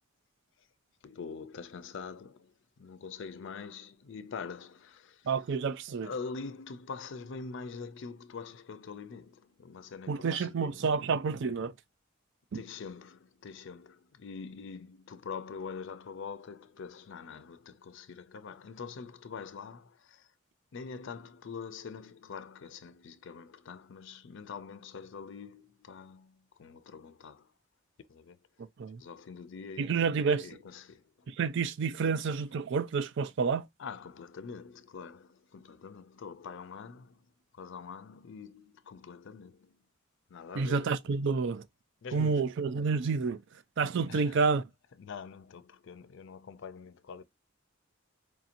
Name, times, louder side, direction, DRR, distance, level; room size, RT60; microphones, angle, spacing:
voice 1, 1.0-5.3 6.0-10.9 12.5-20.3 20.7-27.5 28.1-28.4 29.0-30.1 30.4-31.3 33.8-37.2 37.5-39.8 40.3-40.9 42.0-42.5 44.1-44.4 45.0-47.2, left 5 dB, 65° left, 0.4 m, -44 dB
voice 2, 5.3-6.1 10.1-11.7 12.5-12.6 28.8-29.0 29.8-30.5 31.3-33.7 40.5-41.7 42.1-43.4 43.8-44.6, right 5 dB, 60° right, 0.4 m, -29 dB
4.7 x 2.8 x 2.5 m
head